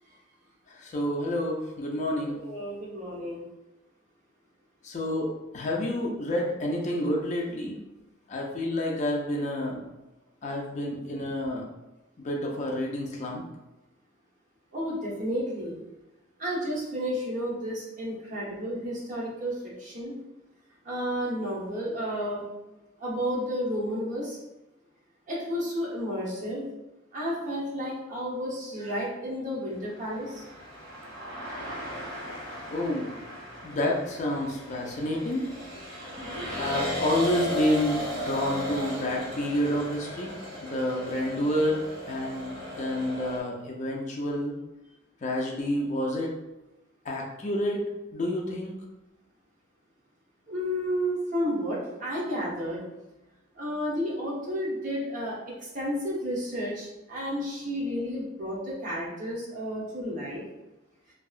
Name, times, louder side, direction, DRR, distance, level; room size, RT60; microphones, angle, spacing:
voice 1, 0.7-2.4 4.8-7.8 8.3-9.8 10.4-11.6 12.2-13.4 32.7-33.1 33.6-35.5 36.6-40.3 40.6-44.5 45.2-46.3 47.1-47.8 48.1-48.8, left 1 dB, 40° left, -1 dB, 0.4 m, -29 dB
voice 2, 2.3-3.4 14.7-15.8 16.4-20.1 20.8-22.5 23.0-24.4 25.3-26.6 27.1-30.4 50.5-52.8 53.6-60.4, equal, 40° right, -5 dB, 0.8 m, -32 dB
sound 1, 29.9-43.4, left 1 dB, 70° right, 1.4 m, -36 dB
2.7 x 2.3 x 2.4 m, 1.0 s
head